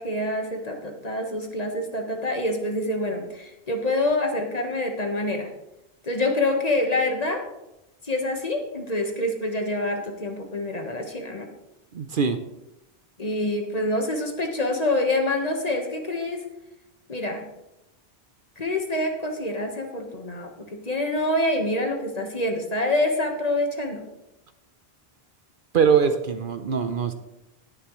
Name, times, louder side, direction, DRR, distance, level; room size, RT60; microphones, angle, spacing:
voice 1, 0.0-5.5 6.0-7.4 8.1-11.5 13.2-16.4 17.1-17.4 18.6-24.0, left 1 dB, 40° left, 3 dB, 1.4 m, -26 dB
voice 2, 11.9-12.4 25.7-27.1, right 6 dB, 60° right, 9 dB, 0.8 m, -22 dB
18.5 x 7.1 x 3.1 m, 0.90 s
omnidirectional pair, 1.1 m